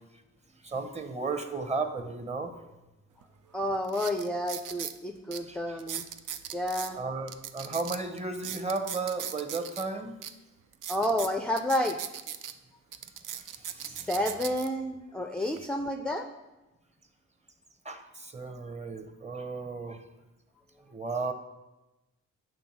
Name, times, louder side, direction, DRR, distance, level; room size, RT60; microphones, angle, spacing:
voice 1, 0.6-2.5 5.5-5.8 6.9-10.2 13.4-14.1 15.4-15.5 17.8-20.0 20.9-21.3, right 3 dB, 20° right, 7 dB, 0.8 m, -34 dB
sound 1, 3.2-3.3 3.8-5.0 5.3-5.4 5.8-6.9 7.3-9.8 10.2-10.3 10.7-12.5 12.9-14.7 15.3-15.6, right 9 dB, 80° right, 0.5 m, -38 dB
voice 2, 3.5-6.1 6.5-7.0 10.9-12.0 13.8-16.3, left 1 dB, 5° left, 4 dB, 0.4 m, -30 dB
8.0 x 3.5 x 6.0 m, 1.0 s
cardioid pair, 85°, 31 cm